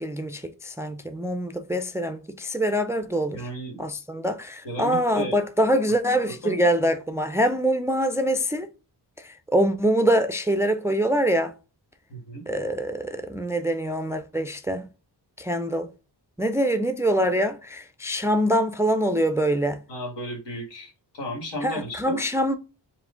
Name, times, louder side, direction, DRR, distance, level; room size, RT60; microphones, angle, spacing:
voice 1, 0.0-3.4 3.8-8.7 9.2-11.5 12.5-14.9 15.4-15.9 16.4-19.8 21.6-22.6, equal, 5° right, 0.3 m, -24 dB
voice 2, 3.3-3.8 4.6-5.4 6.4-6.5 12.1-12.4 19.9-22.2, equal, 80° left, 1.8 m, -34 dB
4.7 x 2.5 x 3.6 m
wide cardioid pair, 100°, 42 cm